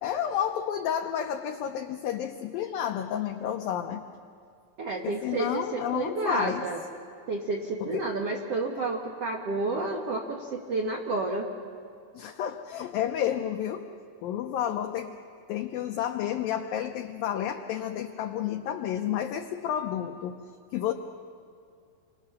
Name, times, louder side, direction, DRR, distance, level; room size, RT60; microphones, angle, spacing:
voice 1, 0.0-4.0 5.0-6.7 7.8-8.1 12.1-13.9 14.2-15.2 15.5-20.4 20.7-20.9, left 10 dB, 80° left, 5 dB, 2.0 m, -31 dB
voice 2, 4.8-6.8 7.3-11.5, right 3 dB, 70° right, 1 dB, 1.4 m, -30 dB
29.0 x 24.5 x 6.7 m, 2.3 s
omnidirectional pair, 5.2 m